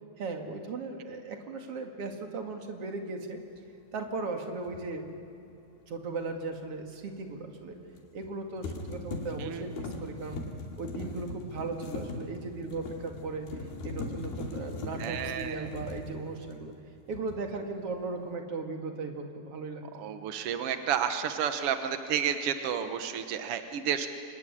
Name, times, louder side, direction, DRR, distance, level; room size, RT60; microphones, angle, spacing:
voice 1, 0.2-3.4 3.9-5.0 5.9-7.8 8.1-10.4 10.8-13.5 13.8-16.7 17.1-20.0, right 3 dB, 45° right, 4 dB, 2.7 m, -37 dB
sound 1, 4.7-4.8 8.0-8.3 8.6-16.8 17.1-17.6, left 3 dB, 80° left, 4.4 m, -39 dB
voice 2, 15.0-15.7 19.9-24.1, right 8 dB, 75° right, 8 dB, 1.3 m, -31 dB
26.0 x 21.0 x 10.0 m, 2.8 s
omnidirectional pair, 4.2 m